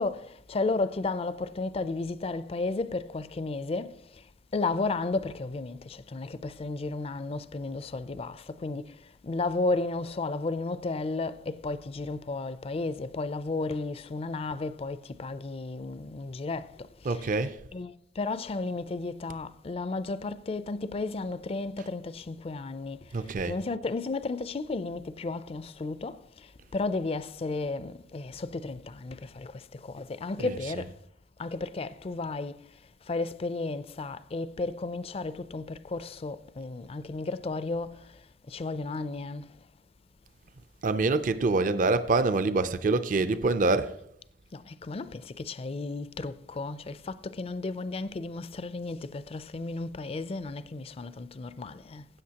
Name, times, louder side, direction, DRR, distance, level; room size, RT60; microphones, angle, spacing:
voice 1, 0.0-17.3 17.7-31.0 31.4-39.7 44.5-52.1, left 3 dB, 35° left, 0.4 m, -33 dB
voice 2, 17.0-17.6 23.1-23.6 30.4-30.8 40.8-43.9, right 3 dB, 50° right, 0.5 m, -26 dB
16.0 x 8.0 x 2.9 m
head